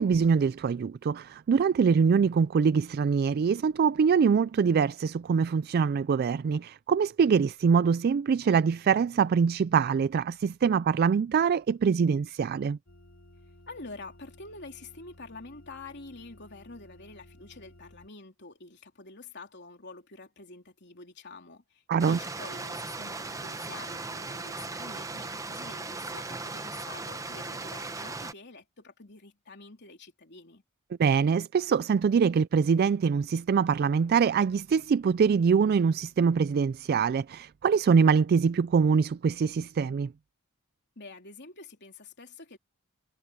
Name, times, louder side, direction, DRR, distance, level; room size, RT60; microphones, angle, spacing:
voice 1, 0.0-12.8 21.9-22.2 31.0-40.1, right 6 dB, 45° right, 0.3 m, -24 dB
sound 1, 12.9-18.1, left 1 dB, 75° left, 3.5 m, -55 dB
voice 2, 13.7-30.6 41.0-42.6, left 3 dB, 50° left, 3.6 m, -47 dB
Stream, 22.0-28.3, right 3 dB, 15° right, 0.9 m, -37 dB
head